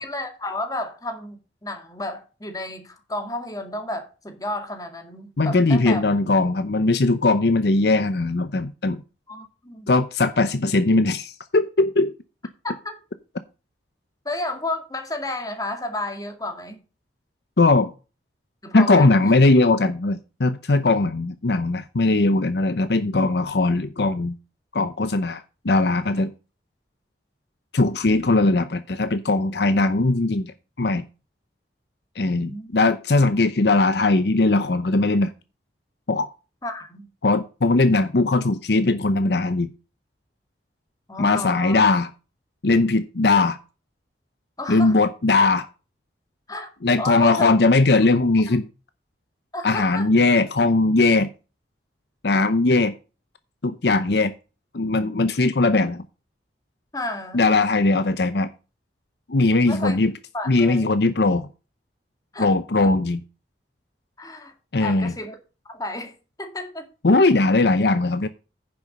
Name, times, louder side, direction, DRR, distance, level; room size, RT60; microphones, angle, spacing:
voice 1, 0.0-6.0 9.3-9.9 12.6-12.9 14.3-16.8 18.6-19.3 32.3-32.8 36.6-37.1 41.1-41.8 44.6-45.0 46.5-46.7 47.0-47.5 49.5-50.1 56.9-57.4 59.7-60.0 60.3-60.9 62.3-62.5 62.8-62.9 64.2-64.5 64.8-65.4 65.7-66.1 66.4-66.9, left 2 dB, 20° left, 2.1 m, -32 dB
voice 2, 5.4-9.0 9.9-12.1 17.6-17.9 18.7-24.3 24.7-26.3 27.7-31.0 32.2-35.3 36.1-36.3 37.2-39.7 41.2-42.1 42.6-43.6 44.7-45.7 46.8-48.7 49.6-51.3 52.2-52.9 53.6-54.3 54.7-56.0 57.3-58.5 59.3-60.1 60.5-61.5 62.4-63.2 64.7-65.1 67.0-68.3, left 3 dB, 65° left, 0.7 m, -19 dB
10.0 x 7.0 x 5.3 m
head